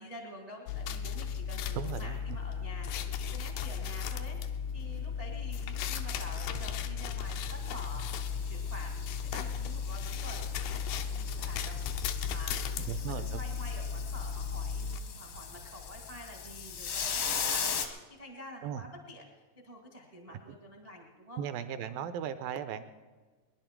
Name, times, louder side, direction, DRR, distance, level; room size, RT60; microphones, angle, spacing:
voice 1, 0.0-19.2 19.6-21.9, left 1 dB, 55° right, 1 dB, 0.4 m, -48 dB
sound 1, 0.7-15.0, left 7 dB, 85° left, 2.6 m, -35 dB
voice 2, 1.7-2.2 12.9-13.4 18.6-18.8 20.3-20.4 21.4-22.8, right 9 dB, 80° right, 10 dB, 2.1 m, -37 dB
sound 2, 7.2-17.9, left 6 dB, 70° left, 1.4 m, -39 dB
22.5 x 10.5 x 4.5 m, 1.4 s
omnidirectional pair, 4.5 m